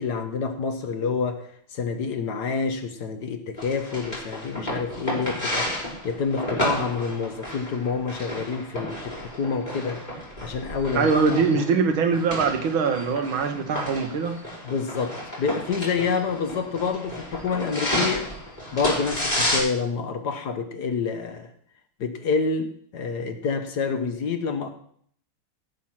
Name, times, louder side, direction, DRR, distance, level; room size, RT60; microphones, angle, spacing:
voice 1, 0.0-5.7 6.0-10.0 10.4-11.4 14.6-18.3 18.7-21.5 22.0-24.7, left 5 dB, 60° left, 7 dB, 1.4 m, -28 dB
sound 1, 3.6-19.6, left 1 dB, 20° left, 4.4 m, -31 dB
voice 2, 11.0-14.4, right 5 dB, 75° right, 7 dB, 2.0 m, -22 dB
17.5 x 6.0 x 5.9 m, 0.63 s
omnidirectional pair, 2.3 m